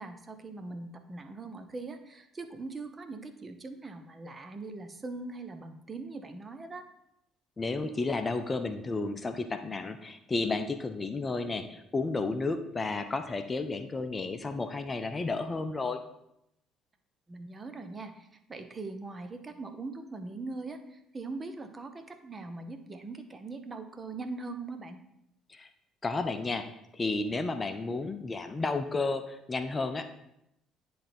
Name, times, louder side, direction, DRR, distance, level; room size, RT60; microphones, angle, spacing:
voice 1, 0.0-6.9 17.3-25.0, right 3 dB, 30° right, 8 dB, 0.8 m, -41 dB
voice 2, 7.6-16.0 25.5-25.7 26.0-30.1, left 3 dB, 25° left, 9 dB, 0.6 m, -32 dB
9.9 x 3.4 x 4.3 m, 0.81 s
figure-of-eight pair, 50°, 0 cm